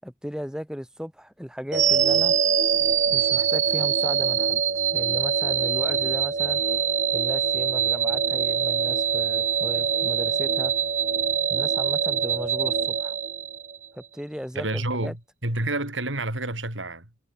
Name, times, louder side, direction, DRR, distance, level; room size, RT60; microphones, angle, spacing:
voice 1, 0.0-2.3 3.1-4.6 4.9-6.6 7.1-10.7 11.5-13.2 13.9-15.1, equal, 5° right, 7.9 m, -36 dB
sound 1, 1.7-13.9, right 7 dB, 40° right, 1.2 m, -23 dB
voice 2, 14.6-17.2, right 2 dB, 90° right, 6.9 m, -29 dB
head